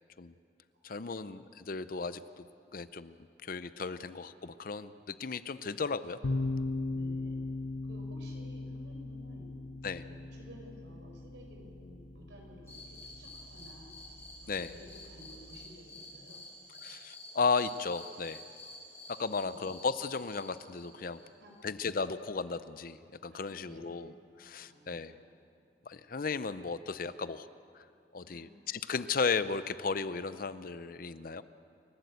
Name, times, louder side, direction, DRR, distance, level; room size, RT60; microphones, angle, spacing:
voice 1, 0.8-2.5 2.7-6.2 9.8-10.0 14.5-14.7 16.8-18.4 19.2-21.2 21.6-24.1 24.4-25.1 25.9-27.5 27.7-27.8 28.1-31.4, left 4 dB, 50° left, 14 dB, 0.6 m, -35 dB
sound 1, 6.2-15.7, left 2 dB, 80° left, 0.8 m, -39 dB
voice 2, 6.9-7.4 7.9-9.5 10.0-14.0 14.4-16.4 19.2-19.6 21.2-21.7 23.3-24.0 24.6-25.2 28.2-28.6, equal, 75° right, 1 dB, 4.6 m, -54 dB
sound 2, 12.7-21.6, left 1 dB, 15° left, 5.9 m, -50 dB
28.5 x 12.0 x 8.2 m, 2.4 s
head